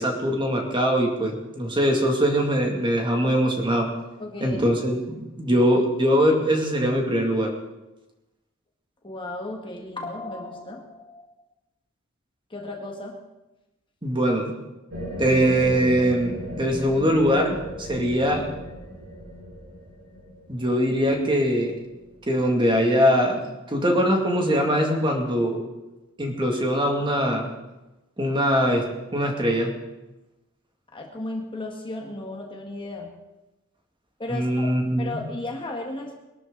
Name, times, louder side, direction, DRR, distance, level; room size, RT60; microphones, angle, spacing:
voice 1, 0.0-3.9 4.4-7.5 14.0-14.5 15.2-18.4 20.5-21.7 22.3-25.6 26.2-27.5 28.2-28.8 29.1-29.7 34.3-35.2, equal, 25° right, 1 dB, 2.3 m, -22 dB
voice 2, 4.2-4.6 9.0-11.2 12.5-13.2 30.9-33.1 34.2-36.2, left 2 dB, 25° left, 1 dB, 1.7 m, -34 dB
sound 1, 14.9-22.2, equal, 85° right, 6.8 m, -36 dB
21.5 x 12.5 x 3.9 m, 1.0 s
head